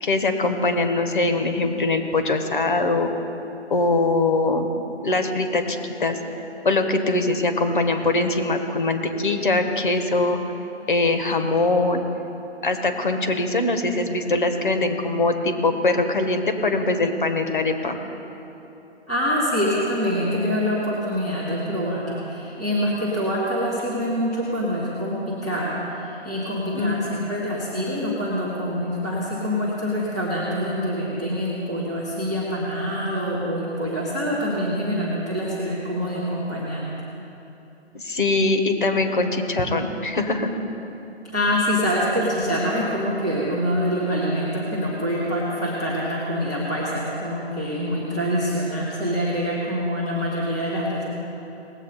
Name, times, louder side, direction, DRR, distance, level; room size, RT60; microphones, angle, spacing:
voice 1, 0.0-3.1 3.7-4.7 5.0-6.2 6.6-10.4 10.9-12.0 12.6-18.0 26.7-27.3 37.9-40.5, left 2 dB, 45° left, 6 dB, 1.3 m, -22 dB
voice 2, 19.1-36.9 41.3-51.0, equal, 5° right, -15 dB, 0.6 m, -25 dB
19.5 x 8.0 x 4.1 m, 3.0 s
hypercardioid pair, 165°, 34 cm